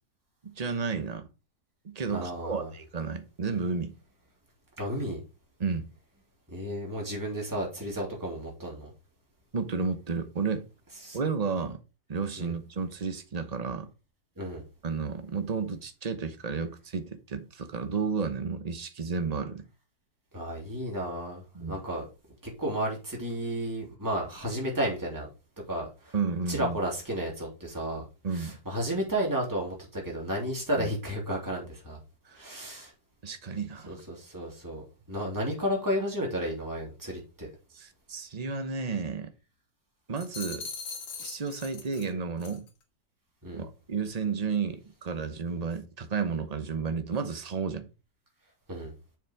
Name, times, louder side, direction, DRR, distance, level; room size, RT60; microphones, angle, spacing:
voice 1, 0.4-1.3 1.8-3.9 5.6-5.9 9.5-10.6 11.1-11.8 12.1-13.9 14.8-19.7 21.5-21.8 26.1-26.8 28.2-28.5 30.8-30.9 33.2-33.9 37.7-39.3 40.1-40.7 41.2-42.7 43.5-47.9, right 5 dB, 35° right, 0.7 m, -32 dB
voice 2, 2.1-2.7 4.8-5.2 6.5-8.9 11.0-11.2 12.4-12.5 14.4-14.6 20.3-22.1 22.4-25.3 25.7-26.1 26.5-28.0 28.3-32.0 32.3-32.9 33.9-37.5 43.4-43.7 48.7-48.9, equal, 10° right, 3.0 m, -32 dB
sound 1, 40.2-42.1 42.4-42.7, left 5 dB, 75° left, 2.1 m, -40 dB
7.3 x 5.8 x 4.7 m
omnidirectional pair, 2.0 m